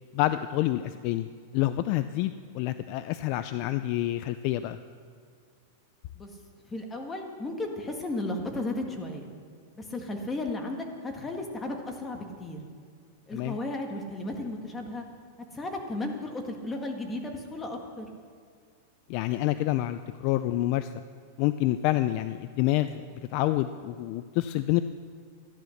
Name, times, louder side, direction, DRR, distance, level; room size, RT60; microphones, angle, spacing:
voice 1, 0.1-1.3 1.5-4.8 13.3-13.6 19.1-20.9 21.4-23.0 23.3-24.8, left 15 dB, 45° left, 12 dB, 0.4 m, -27 dB
voice 2, 6.7-9.3 9.8-12.6 13.3-15.0 15.5-18.1, left 2 dB, 15° left, 3 dB, 1.7 m, -34 dB
13.5 x 11.0 x 6.5 m, 2.1 s
supercardioid pair, 150°, 0 cm